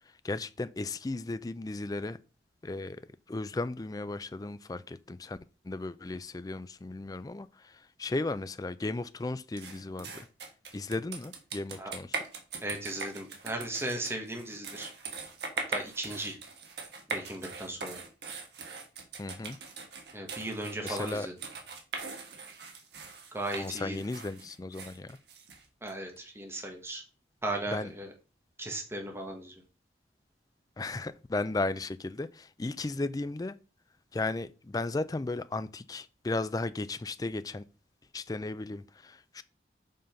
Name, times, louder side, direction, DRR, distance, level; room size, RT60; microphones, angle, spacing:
voice 1, 0.2-2.2 2.6-3.0 3.3-5.4 5.6-10.3 10.7-12.2 19.2-19.6 20.8-21.3 23.5-25.2 27.7-27.9 30.8-33.6 34.1-37.6 38.1-39.4, left 2 dB, 20° left, 0.3 m, -35 dB
sound 1, 9.6-25.9, right 4 dB, 65° right, 1.5 m, -41 dB
voice 2, 12.6-14.9 15.7-16.4 17.1-18.0 20.1-21.3 23.3-24.0 25.8-27.0 27.4-28.1 28.6-29.6, right 1 dB, 15° right, 1.5 m, -36 dB
5.6 x 5.5 x 5.1 m
head